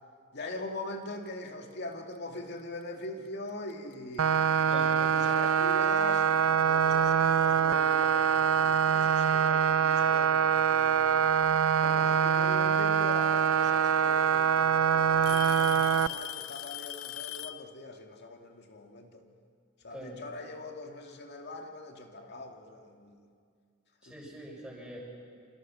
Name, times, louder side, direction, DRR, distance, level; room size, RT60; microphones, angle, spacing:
voice 1, 0.3-4.3 5.0-11.3 11.8-19.2 19.8-23.3 24.1-24.2, left 2 dB, 50° left, 3 dB, 2.3 m, -42 dB
Alarm / Tick-tock, 3.7-3.9 4.8-4.9 5.7-5.8 7.5-7.6 8.8-8.9 10.1-10.6 12.3-12.4 13.7-13.8 14.1-14.6 15.2-17.7, left 14 dB, 75° left, 0.7 m, -40 dB
sound 1, 4.2-16.1, right 7 dB, 80° right, 0.5 m, -24 dB
voice 2, 24.0-25.0, equal, 5° right, -4 dB, 6.9 m, -44 dB
28.0 x 27.5 x 6.3 m, 2.2 s
head